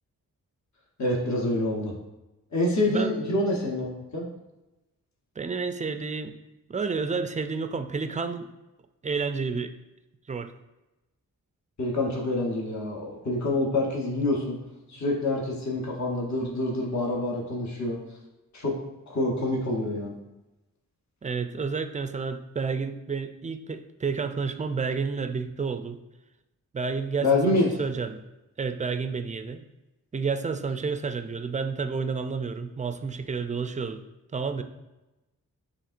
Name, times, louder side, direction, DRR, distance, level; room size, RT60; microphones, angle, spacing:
voice 1, 1.0-1.9 2.5-4.3 11.8-14.6 14.9-18.0 18.5-18.8 19.1-20.2 27.2-27.7, left 2 dB, 50° left, -2 dB, 1.0 m, -26 dB
voice 2, 5.4-6.3 6.7-8.5 9.0-9.7 10.3-10.5 21.2-26.0 26.7-28.2 28.6-29.6 30.1-34.0 34.3-34.6, right 5 dB, 20° right, 8 dB, 0.3 m, -30 dB
7.2 x 2.9 x 2.5 m, 1.0 s
cardioid pair, 60°, 35 cm